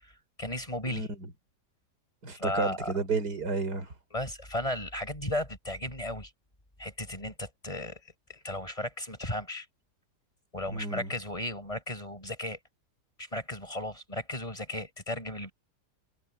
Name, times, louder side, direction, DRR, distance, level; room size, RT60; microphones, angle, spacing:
voice 1, 0.4-1.1 2.3-2.9 4.1-6.3 6.8-8.0 8.3-9.7 10.5-12.6 13.2-15.5, left 1 dB, 20° left, 6.6 m, -35 dB
voice 2, 0.9-1.3 2.2-3.9 10.7-11.1, right 4 dB, 70° right, 4.9 m, -32 dB
omnidirectional pair, 1.8 m